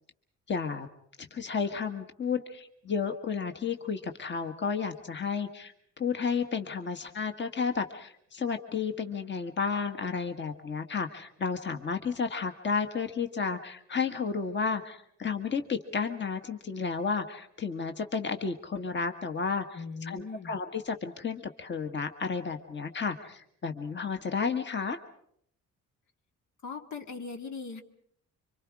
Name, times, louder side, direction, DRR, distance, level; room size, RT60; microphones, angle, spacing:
voice 1, 0.5-0.9 1.3-25.0, left 5 dB, 35° left, 6 dB, 1.6 m, -32 dB
voice 2, 19.7-20.6 26.6-27.8, left 4 dB, 70° left, 5 dB, 2.2 m, -39 dB
27.0 x 25.5 x 4.8 m, 0.68 s
cardioid pair, 105°, 31 cm